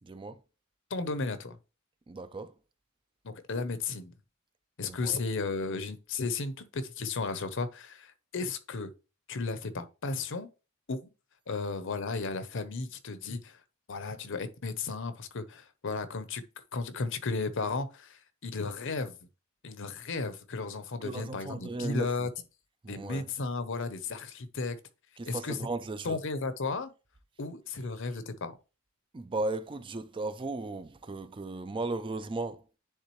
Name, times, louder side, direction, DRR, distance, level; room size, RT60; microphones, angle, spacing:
voice 1, 0.1-0.4 2.1-2.5 4.9-5.2 21.0-22.3 22.8-23.2 25.2-26.2 29.1-32.6, right 2 dB, 25° right, 0.4 m, -36 dB
voice 2, 0.9-1.6 3.2-4.1 4.8-8.9 9.3-10.5 10.9-11.1 11.5-13.6 13.9-16.4 16.7-19.2 19.6-22.3 22.9-24.8 25.3-25.6 26.0-26.9 27.4-28.5, left 4 dB, 60° left, 0.8 m, -34 dB
9.9 x 3.6 x 3.1 m
head